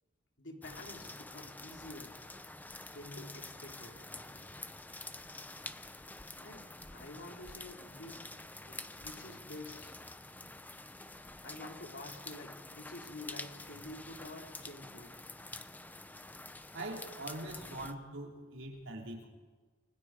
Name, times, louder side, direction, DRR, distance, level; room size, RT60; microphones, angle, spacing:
voice 1, 0.4-2.1 2.9-4.6 6.4-6.6 6.9-9.9 11.4-15.2, left 2 dB, 65° left, 2 dB, 3.7 m, -49 dB
sound 1, 0.6-17.9, left 2 dB, 10° left, 0.7 m, -48 dB
voice 2, 16.7-19.3, right 1 dB, 75° right, 0 dB, 4.9 m, -43 dB
30.0 x 21.5 x 4.9 m, 1.4 s
head